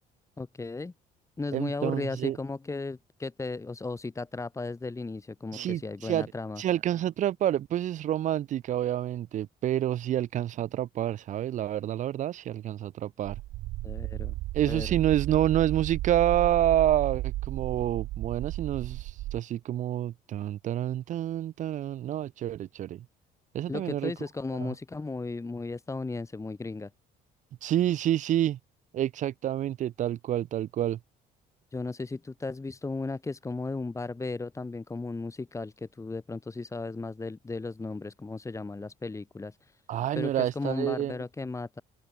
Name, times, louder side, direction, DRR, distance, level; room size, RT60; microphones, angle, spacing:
voice 1, 0.4-0.9 1.4-6.6 13.8-14.3 14.7-14.9 23.7-26.9 31.7-39.6 40.1-41.8, left 3 dB, 15° left, 2.8 m, -35 dB
voice 2, 1.5-2.4 5.5-6.3 6.6-13.4 14.5-23.0 23.5-24.1 24.6-24.7 27.6-28.6 28.9-31.0 39.9-41.2, right 12 dB, 45° right, 0.4 m, -28 dB
sound 1, 13.3-19.4, right 18 dB, 80° right, 1.6 m, -34 dB
cardioid pair, 110°, 17 cm